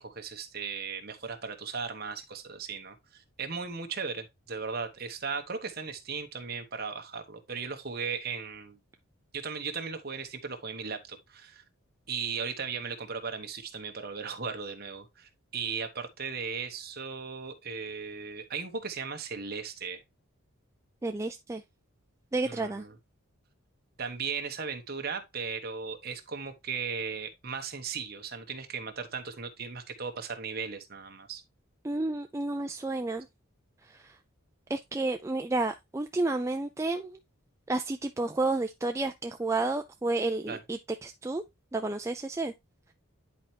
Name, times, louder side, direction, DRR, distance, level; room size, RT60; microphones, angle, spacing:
voice 1, 0.0-8.8 9.3-11.6 12.1-20.0 22.4-23.0 24.0-31.4 40.5-40.6, right 5 dB, 45° right, 1.1 m, -37 dB
voice 2, 21.0-21.6 22.3-22.8 31.8-33.3 34.0-34.1 34.7-37.2 37.7-41.4 41.7-42.5, right 2 dB, 15° right, 0.3 m, -31 dB
10.0 x 4.4 x 2.8 m
head